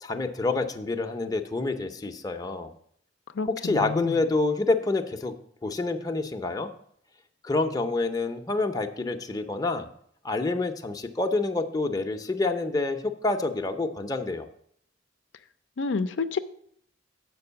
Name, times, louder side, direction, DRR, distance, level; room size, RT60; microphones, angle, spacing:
voice 1, 0.0-2.7 3.6-5.3 5.6-6.7 7.4-9.9 10.2-14.5, left 3 dB, 20° left, 4 dB, 0.6 m, -27 dB
voice 2, 3.3-4.2 15.8-16.4, left 4 dB, 75° left, 9 dB, 0.5 m, -29 dB
7.7 x 5.4 x 6.8 m, 0.67 s
head